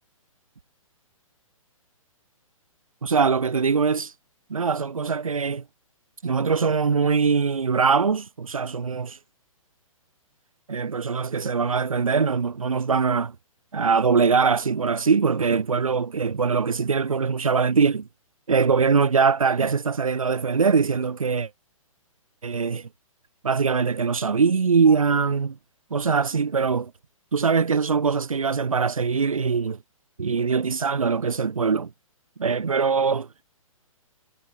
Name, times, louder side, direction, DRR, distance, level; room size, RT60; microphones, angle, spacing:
voice 1, 3.0-4.1 4.5-5.6 6.2-9.2 10.7-13.3 13.7-18.1 18.5-21.5 22.4-22.9 23.4-25.6 25.9-26.9 27.3-29.8 30.2-31.9 32.4-33.3, right 5 dB, 70° right, 3.9 m, -22 dB
figure-of-eight pair, 125°, 18 cm